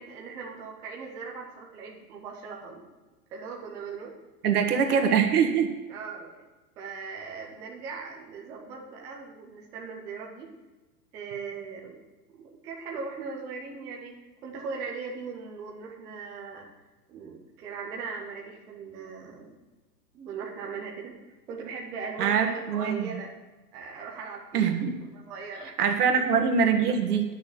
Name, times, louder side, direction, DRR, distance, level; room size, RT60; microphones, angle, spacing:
voice 1, 0.0-2.8 3.3-4.1 4.7-5.2 5.9-6.5 6.8-10.5 11.1-12.0 12.3-16.7 17.1-19.6 20.1-23.4 23.7-24.8 25.1-26.2, right 5 dB, 10° right, -2 dB, 0.3 m, -39 dB
voice 2, 4.4-5.7 22.2-23.1 24.5-24.9 25.8-27.2, right 6 dB, 65° right, 6 dB, 1.7 m, -23 dB
9.5 x 6.5 x 7.0 m, 1.2 s
hypercardioid pair, 115°, 49 cm